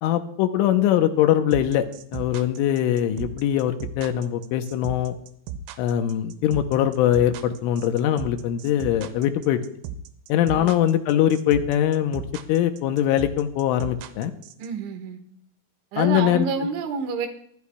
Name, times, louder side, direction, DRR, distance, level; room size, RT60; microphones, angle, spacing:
voice 1, 0.0-1.8 2.1-5.2 5.8-9.6 10.3-12.2 12.5-14.3 16.0-16.5, left 11 dB, 80° left, 7 dB, 3.2 m, -22 dB
sound 1, 1.5-14.7, right 9 dB, 90° right, 3.5 m, -36 dB
voice 2, 14.6-15.2 15.9-17.3, right 5 dB, 70° right, 6 dB, 3.7 m, -28 dB
22.5 x 13.0 x 2.3 m, 0.66 s
omnidirectional pair, 5.8 m